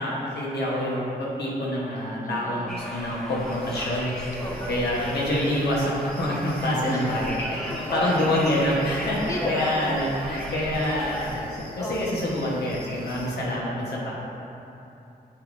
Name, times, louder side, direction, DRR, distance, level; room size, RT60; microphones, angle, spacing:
voice 1, 0.0-4.1 4.7-7.6 7.9-14.1, left 1 dB, 90° left, -5 dB, 1.1 m, -26 dB
voice 2, 2.2-2.8 4.4-4.8 6.8-7.1 7.5-8.3 8.9-10.0 11.7-12.0, equal, 20° left, -4 dB, 1.2 m, -33 dB
Conversation, 2.7-11.3, equal, 5° left, 1.4 m, -38 dB
sound 1, 3.4-13.4, left 1 dB, 60° left, 1.3 m, -43 dB
8.0 x 6.2 x 2.6 m, 2.9 s
cardioid pair, 55°, 17 cm